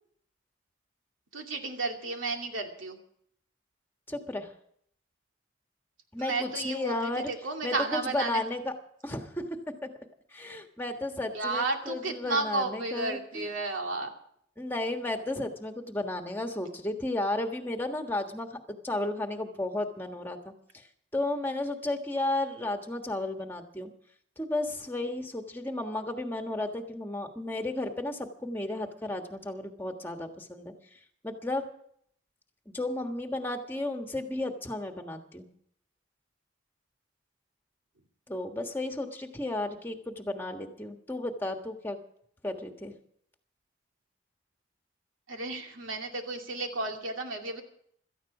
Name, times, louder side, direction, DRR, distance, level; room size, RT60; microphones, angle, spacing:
voice 1, 1.3-3.0 6.2-8.5 11.3-14.1 45.3-47.6, right 3 dB, 85° right, 3 dB, 2.5 m, -33 dB
voice 2, 4.1-4.5 6.1-7.3 7.6-8.7 9.0-9.9 10.3-13.5 14.6-18.6 18.8-20.8 21.1-23.9 24.4-30.7 31.2-31.7 32.7-35.5 38.3-42.0 42.4-43.0, left 2 dB, 10° left, 4 dB, 1.5 m, -33 dB
17.5 x 13.5 x 4.9 m, 0.66 s
head